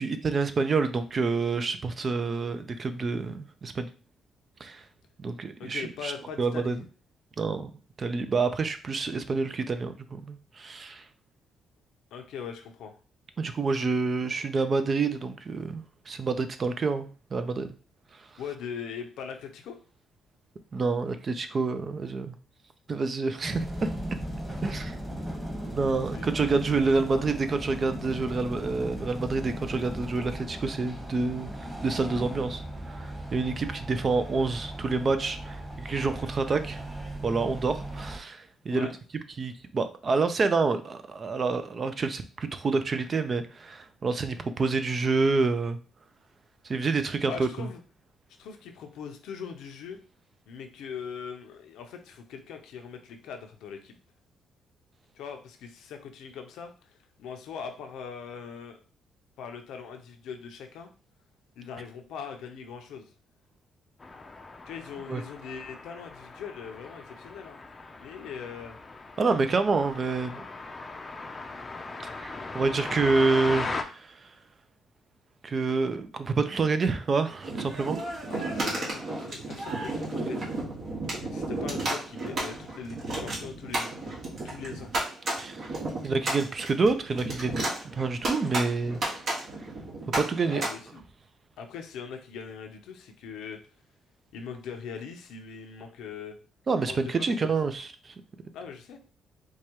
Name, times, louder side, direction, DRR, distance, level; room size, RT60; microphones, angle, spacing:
voice 1, 0.0-3.9 4.6-4.8 5.2-6.1 6.4-6.8 7.4-7.7 8.0-11.0 13.4-17.7 20.7-22.3 22.9-23.9 24.6-25.0 25.6-31.5 31.8-32.6 32.9-36.8 37.2-38.9 39.4-45.8 46.6-47.7 65.1-65.2 69.2-70.4 72.2-74.3 75.4-78.0 85.4-85.7 86.0-87.6 87.9-89.0 89.3-89.5 90.1-90.7 96.7-98.1, right 4 dB, 40° right, 9 dB, 0.5 m, -28 dB
voice 2, 5.6-6.8 12.1-13.0 18.4-19.8 26.1-26.3 26.8-27.2 38.7-38.9 47.3-47.8 48.4-50.0 50.5-53.9 55.1-58.8 59.4-60.9 61.6-63.1 64.7-67.6 67.9-68.8 78.3-80.5 81.2-84.9 90.5-91.0 91.6-93.6 94.3-96.4 96.8-97.5 98.5-99.0, left 6 dB, 85° left, 5 dB, 0.6 m, -41 dB
sound 1, 23.4-38.2, right 1 dB, 10° right, 1.4 m, -37 dB
sound 2, 64.0-73.8, left 3 dB, 30° left, 0.5 m, -38 dB
sound 3, 77.4-90.7, right 2 dB, 55° right, 1.5 m, -33 dB
4.6 x 2.3 x 2.9 m, 0.37 s
cardioid pair, 90°, 0 cm